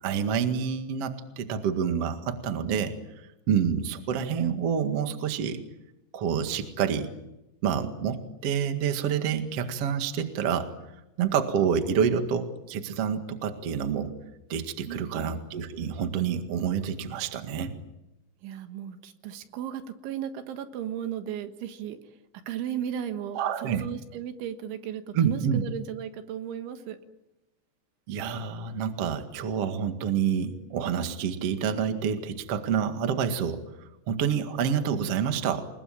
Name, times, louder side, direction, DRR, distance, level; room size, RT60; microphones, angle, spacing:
voice 1, 0.0-2.9 3.5-5.6 6.1-7.1 7.6-10.7 11.2-14.1 14.5-17.7 23.4-23.9 25.1-25.6 28.1-35.7, right 7 dB, 50° right, 7 dB, 1.9 m, -28 dB
voice 2, 14.9-15.4 18.4-22.0 22.5-27.0, right 9 dB, 80° right, 8 dB, 3.9 m, -35 dB
28.0 x 21.0 x 8.9 m, 0.91 s
omnidirectional pair, 5.5 m